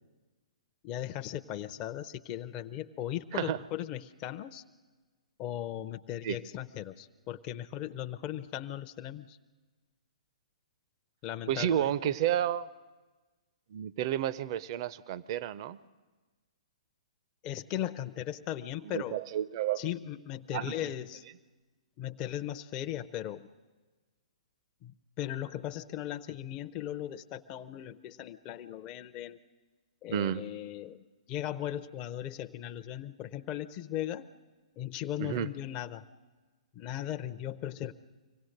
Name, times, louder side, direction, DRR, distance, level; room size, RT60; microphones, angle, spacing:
voice 1, 0.8-4.6 5.4-9.4 11.2-12.1 17.4-19.2 19.8-21.2 22.0-23.5 24.8-29.4 30.0-31.0 31.3-34.3 34.8-36.0 36.7-37.9, left 12 dB, 30° left, 8 dB, 0.6 m, -38 dB
voice 2, 11.5-12.7 13.7-15.8 18.8-19.9 20.5-20.7 30.1-30.4 35.2-35.5, right 10 dB, 45° right, 18 dB, 0.6 m, -31 dB
25.0 x 17.5 x 6.5 m, 1.3 s
figure-of-eight pair, 120°, 4 cm